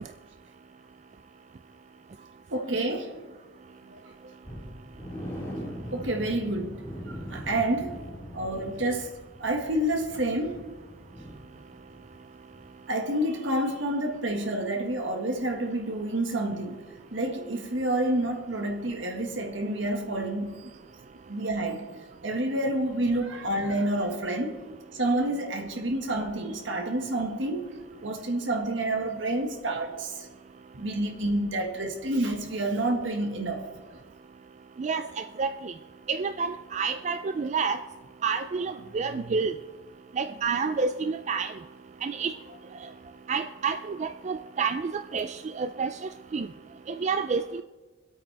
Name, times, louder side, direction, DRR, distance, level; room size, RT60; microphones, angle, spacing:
voice 1, 2.5-3.1 3.9-4.0 5.9-6.8 7.3-8.0 8.3-9.1 9.4-10.7 12.9-16.9 17.1-20.7 21.3-21.9 22.2-24.6 24.9-27.7 28.0-30.3 30.7-33.6, right 1 dB, 75° right, 1.7 m, -29 dB
sound 1, 4.4-12.2 12.5-12.7 13.1-13.2, equal, 15° left, 4.5 m, -41 dB
voice 2, 34.8-35.7 36.1-37.8 38.2-39.5 40.1-41.5 42.0-42.3 42.8-42.9 43.3-46.5 46.9-47.6, right 5 dB, 35° right, 0.3 m, -29 dB
25.0 x 8.5 x 3.4 m
head